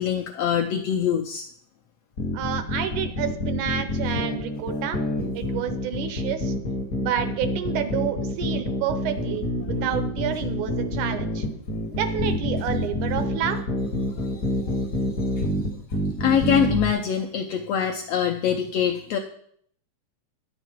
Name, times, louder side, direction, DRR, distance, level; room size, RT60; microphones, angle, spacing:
voice 1, 0.0-1.4 14.2-14.7 15.4-15.7 16.2-19.2, left 8 dB, 80° left, 3 dB, 1.5 m, -24 dB
sound 1, 2.2-16.9, left 1 dB, 55° left, 0.9 m, -27 dB
voice 2, 2.3-5.0 5.3-6.5 7.0-11.5 12.0-13.6, right 9 dB, 80° right, 10 dB, 2.2 m, -29 dB
10.0 x 7.6 x 4.5 m, 0.64 s
omnidirectional pair, 3.5 m